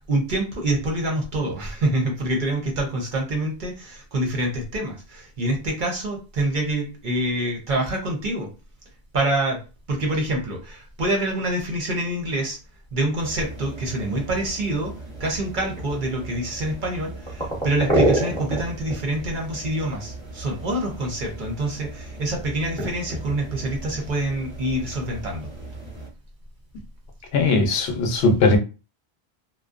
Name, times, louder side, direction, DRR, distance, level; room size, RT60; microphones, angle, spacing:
voice 1, 0.1-8.5 9.1-9.6 9.9-12.6 12.9-14.9 15.2-25.5, right 1 dB, 55° right, 0.8 m, -26 dB
sound 1, 13.2-26.1, right 1 dB, 5° left, 0.8 m, -31 dB
voice 2, 27.3-28.6, left 3 dB, 70° left, 0.8 m, -19 dB
2.6 x 2.1 x 2.4 m
omnidirectional pair, 1.1 m